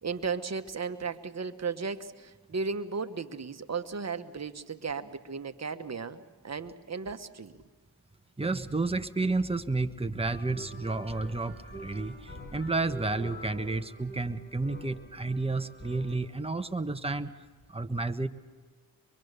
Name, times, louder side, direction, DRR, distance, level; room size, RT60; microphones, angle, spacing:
voice 1, 0.0-7.5, right 5 dB, 40° right, 9 dB, 1.4 m, -35 dB
voice 2, 8.4-12.1 12.5-17.3 17.7-18.3, right 3 dB, 15° right, 8 dB, 1.2 m, -31 dB
sound 1, 10.2-16.2, equal, 25° left, 5.5 m, -46 dB
24.0 x 23.5 x 6.8 m, 1.4 s
cardioid pair, 60°, 40 cm